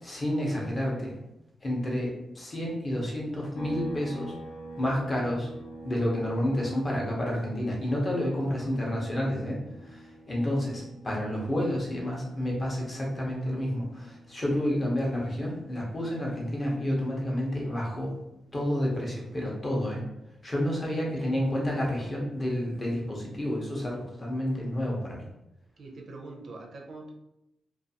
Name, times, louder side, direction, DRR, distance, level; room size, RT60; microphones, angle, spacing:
voice 1, 0.0-1.1 1.6-4.3 4.8-5.5 5.8-18.1 18.5-20.0 20.4-25.2, left 1 dB, 25° left, -3 dB, 0.6 m, -30 dB
sound 1, 3.6-17.1 17.4-19.7, right 2 dB, 85° left, 0.8 m, -47 dB
voice 2, 8.4-8.7 20.8-21.3 25.8-27.1, right 2 dB, 45° right, 1 dB, 0.4 m, -45 dB
2.4 x 2.3 x 2.7 m, 0.87 s
wide cardioid pair, 165°, 0 cm